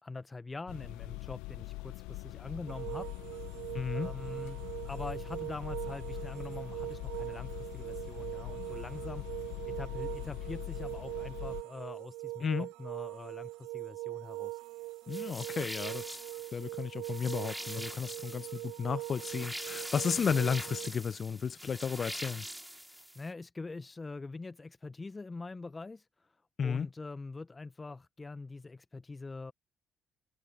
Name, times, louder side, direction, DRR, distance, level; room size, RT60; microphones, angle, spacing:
voice 1, 0.0-3.1 3.9-4.6 4.8-14.6 22.8-26.1 26.6-29.5, left 3 dB, 25° left, 1.1 m, -44 dB
sound 1, 0.7-11.6, left 22 dB, 75° left, 1.0 m, -42 dB
sound 2, 2.7-20.9, right 20 dB, 75° right, 1.3 m, -42 dB
voice 2, 3.7-4.1 12.4-12.7 15.1-16.2 16.5-22.4 26.6-26.9, left 6 dB, 45° left, 0.7 m, -33 dB
sound 3, 15.1-23.3, equal, 5° right, 2.9 m, -44 dB
hypercardioid pair, 45°, 0 cm